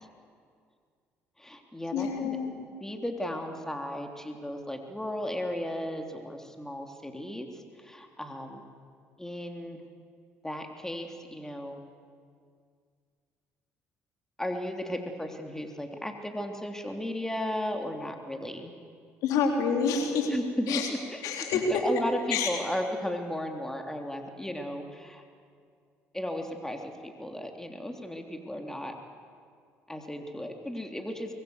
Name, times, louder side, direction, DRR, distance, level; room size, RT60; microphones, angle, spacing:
voice 1, 1.4-2.4 2.8-8.7 9.2-9.8 10.4-11.8 14.4-18.7 20.3-20.8 21.1-21.2 21.5-25.2 26.1-28.9 29.9-31.3, left 1 dB, 10° left, 4 dB, 3.3 m, -35 dB
voice 2, 1.9-2.5 19.2-20.3 20.7-20.9 21.2-21.8 22.3-22.5, left 5 dB, 75° left, 3 dB, 3.6 m, -27 dB
24.0 x 21.5 x 8.1 m, 2.1 s
supercardioid pair, 65°, 6 cm